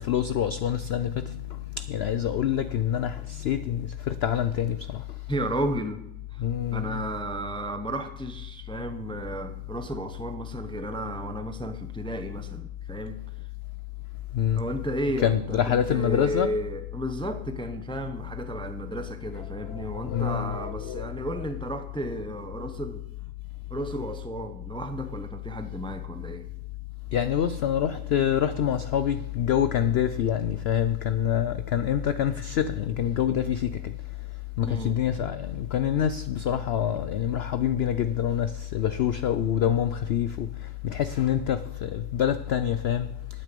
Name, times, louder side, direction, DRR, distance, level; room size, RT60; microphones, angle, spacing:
voice 1, 0.0-5.2 6.4-7.0 14.3-14.6 15.2-16.6 19.6-21.2 27.1-33.9 34.6-43.4, left 9 dB, 80° left, 0.5 m, -26 dB
voice 2, 5.3-6.0 6.3-6.4 6.7-13.2 14.5-23.0 23.7-26.5 34.6-34.9, right 1 dB, 5° left, 0.4 m, -33 dB
11.0 x 9.1 x 5.2 m
omnidirectional pair, 1.6 m